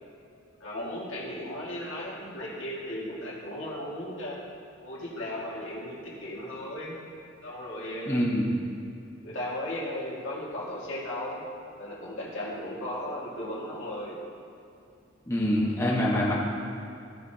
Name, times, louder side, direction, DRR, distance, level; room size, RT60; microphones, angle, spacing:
voice 1, 0.6-4.4 4.8-7.0 7.4-8.2 9.2-11.4 11.8-14.2, left 1 dB, 80° left, -5 dB, 1.9 m, -36 dB
voice 2, 8.0-8.5 15.3-16.3, equal, 15° left, -6 dB, 1.2 m, -25 dB
15.0 x 5.0 x 2.8 m, 2.6 s
head